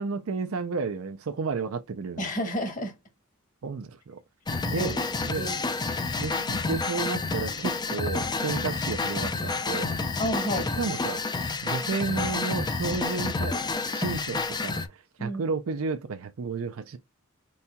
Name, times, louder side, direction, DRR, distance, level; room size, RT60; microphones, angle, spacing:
voice 1, 0.0-2.3 3.6-4.2 4.6-5.0 5.2-5.5 6.2-9.9 10.8-11.2 11.6-13.6 13.9-17.0, right 4 dB, 70° right, 0.5 m, -32 dB
voice 2, 2.2-3.0 4.5-5.0 5.3-5.6 10.2-10.7 15.2-15.4, equal, 40° left, 1.6 m, -31 dB
sound 1, 4.5-14.9, left 3 dB, 20° left, 0.5 m, -29 dB
4.6 x 4.2 x 2.2 m
head